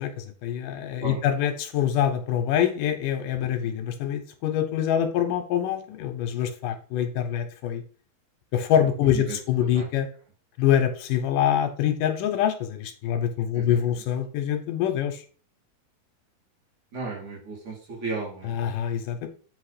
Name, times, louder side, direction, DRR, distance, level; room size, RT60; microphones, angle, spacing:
voice 1, 0.0-7.8 8.5-10.1 10.6-15.2 18.4-19.3, left 10 dB, 75° left, 6 dB, 2.4 m, -25 dB
voice 2, 9.0-9.4 9.7-9.9 13.6-13.8 16.9-18.5, right 4 dB, 60° right, -4 dB, 4.1 m, -34 dB
8.0 x 3.5 x 5.0 m, 0.40 s
omnidirectional pair, 3.9 m